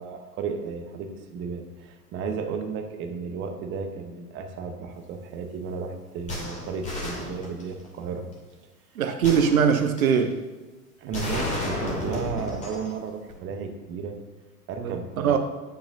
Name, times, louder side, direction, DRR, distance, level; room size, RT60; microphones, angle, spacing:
voice 1, 0.0-8.3 9.3-9.4 11.0-14.2 14.7-15.4, right 5 dB, 25° right, 5 dB, 1.0 m, -34 dB
sound 1, 6.3-7.9 9.2-10.2 11.1-12.9 13.3-13.4, left 1 dB, 15° left, 2.6 m, -32 dB
voice 2, 9.0-10.4 14.8-15.4, right 7 dB, 60° right, 7 dB, 0.9 m, -22 dB
10.0 x 9.1 x 2.7 m, 1.2 s
figure-of-eight pair, 90°, 47 cm